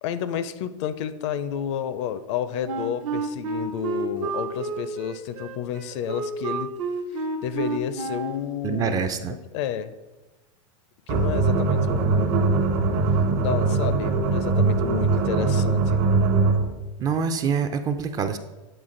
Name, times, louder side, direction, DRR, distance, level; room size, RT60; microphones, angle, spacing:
voice 1, 0.0-6.7 7.4-9.0 9.5-9.9 11.1-12.7 13.4-16.0, left 9 dB, 60° left, 13 dB, 0.5 m, -30 dB
Wind instrument woodwind instrument, 2.6-8.5, right 3 dB, 75° right, 0.9 m, -30 dB
voice 2, 8.6-9.3 17.0-18.4, right 6 dB, 20° right, 8 dB, 0.4 m, -25 dB
sound 1, 11.1-16.7, right 4 dB, 45° right, 0.8 m, -21 dB
8.0 x 3.7 x 3.7 m, 1.1 s
supercardioid pair, 135°, 17 cm